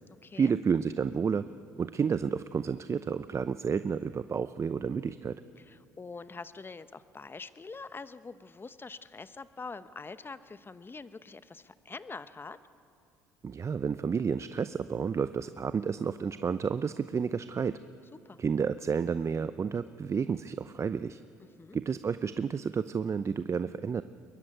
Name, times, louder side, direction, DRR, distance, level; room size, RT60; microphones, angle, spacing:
voice 1, 0.4-1.5 1.8-5.4 13.4-17.8 18.4-21.2 21.7-24.0, right 6 dB, 35° right, 13 dB, 0.7 m, -30 dB
voice 2, 5.6-12.6 18.1-18.4 21.4-21.8, left 4 dB, 25° left, 14 dB, 1.1 m, -45 dB
23.0 x 21.5 x 9.3 m, 2.6 s
hypercardioid pair, 60°, 9 cm